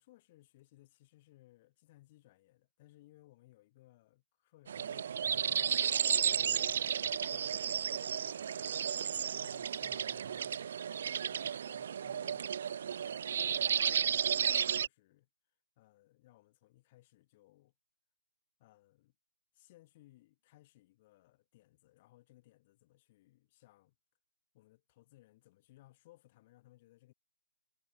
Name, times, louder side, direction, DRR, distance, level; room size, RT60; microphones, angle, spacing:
voice 1, 0.0-8.8 9.3-10.5 11.1-15.3 15.8-17.7 18.6-19.1 19.5-23.9 24.5-27.1, left 17 dB, 30° left, 5.9 m, -63 dB
sound 1, 4.7-14.9, right 8 dB, 50° right, 0.7 m, -33 dB
figure-of-eight pair, 140°, 0 cm